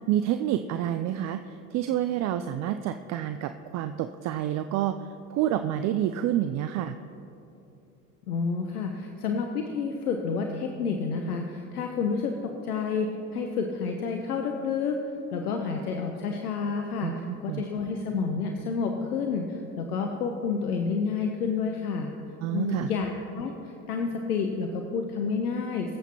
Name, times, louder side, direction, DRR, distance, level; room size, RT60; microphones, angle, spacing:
voice 1, 0.1-5.0 5.3-6.9 17.0-17.6 22.4-22.9, right 11 dB, 40° right, 9 dB, 0.5 m, -28 dB
voice 2, 8.3-15.0 15.3-22.1 22.5-26.0, left 5 dB, 80° left, 3 dB, 1.0 m, -29 dB
24.0 x 8.1 x 3.0 m, 2.8 s
hypercardioid pair, 75°, 45 cm